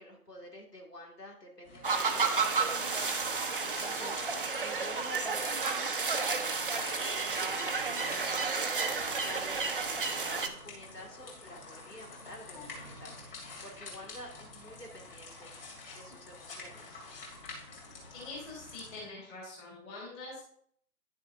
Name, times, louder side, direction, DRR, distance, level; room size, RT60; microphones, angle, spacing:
voice 1, 0.0-7.1 7.5-8.7 9.0-17.0, left 1 dB, 90° left, 0 dB, 2.5 m, -50 dB
Sonicsnaps-OM-FR-ontaine-eau, 1.6-19.0, left 3 dB, 35° left, 2.7 m, -49 dB
sound 1, 1.8-10.5, right 4 dB, 35° right, 0.7 m, -31 dB
voice 2, 18.1-20.4, left 2 dB, 10° left, -5 dB, 1.9 m, -44 dB
10.5 x 6.4 x 2.7 m, 0.64 s
figure-of-eight pair, 145°, 47 cm